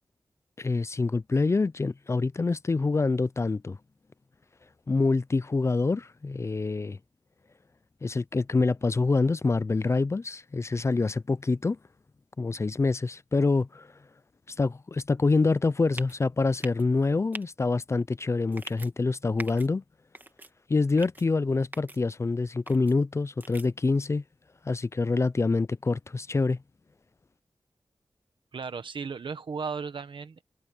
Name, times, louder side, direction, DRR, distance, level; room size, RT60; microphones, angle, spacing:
voice 1, 0.6-3.8 4.9-7.0 8.0-11.8 12.4-13.9 14.5-19.8 20.7-24.2 24.6-26.6, left 3 dB, 35° left, 0.4 m, -26 dB
sound 1, 15.9-16.2 16.6-16.8 17.3-17.4 18.5-18.9 19.4-19.7 20.1-20.5 21.0-21.2 21.7-22.0 22.7-22.9 23.4-23.7, right 2 dB, 25° right, 1.7 m, -41 dB
voice 2, 28.5-30.4, right 5 dB, 85° right, 1.2 m, -35 dB
wide cardioid pair, 105°, 8 cm